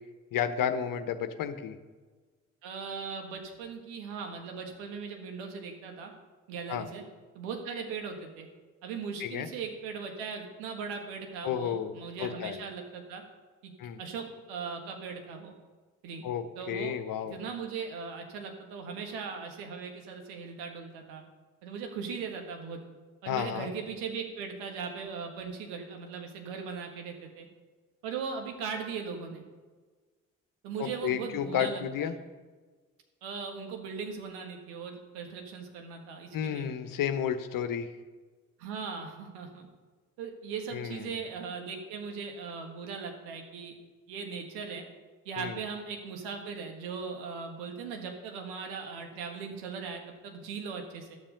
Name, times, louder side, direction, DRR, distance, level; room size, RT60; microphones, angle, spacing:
voice 1, 0.3-1.8 6.7-6.9 9.2-9.5 11.4-11.9 12.2-12.6 13.8-14.0 16.2-17.4 23.3-23.7 30.8-32.1 36.3-37.9 40.7-41.1 45.4-45.6, left 9 dB, 55° left, 10 dB, 1.1 m, -32 dB
voice 2, 2.6-6.1 6.5-7.0 7.3-8.5 8.8-13.2 13.6-13.7 14.0-15.5 16.0-16.2 16.5-16.9 17.3-21.2 21.6-22.8 23.2-27.5 28.0-29.4 30.6-32.1 33.2-36.7 38.6-39.7 40.2-43.7 44.1-44.8 45.2-51.2, right 5 dB, 75° right, 3 dB, 1.6 m, -39 dB
12.5 x 7.3 x 5.3 m, 1.4 s
hypercardioid pair, 40°, 39 cm